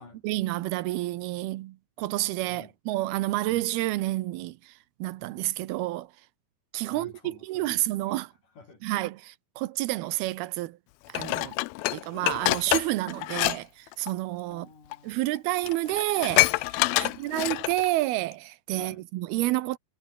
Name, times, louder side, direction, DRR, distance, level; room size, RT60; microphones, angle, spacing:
voice 1, 0.2-6.1 6.7-8.3 8.8-10.8 11.1-11.6 11.9-14.7 15.0-19.8, right 17 dB, 90° right, 2.8 m, -29 dB
voice 2, 6.9-9.0 14.5-15.3 16.9-17.2 18.7-19.1, left 4 dB, 55° left, 8.0 m, -50 dB
Dishes pots and pans, 11.1-13.6 13.9-14.1 14.9-15.0 15.4-15.5 15.7-17.9 18.3-18.4, left 20 dB, 85° left, 2.4 m, -26 dB
omnidirectional pair, 4.4 m